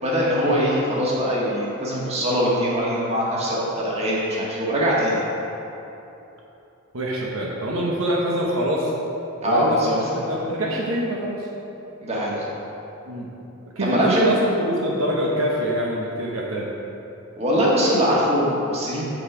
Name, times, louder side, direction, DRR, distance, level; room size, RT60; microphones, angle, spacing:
voice 1, 0.0-5.2 9.4-10.0 12.0-12.4 13.8-14.3 17.4-19.1, equal, 30° right, -5 dB, 1.6 m, -22 dB
voice 2, 6.9-8.9 9.4-11.5 13.1-13.3 13.8-16.7, right 1 dB, 70° right, -3 dB, 1.0 m, -25 dB
8.0 x 6.2 x 5.0 m, 3.0 s
head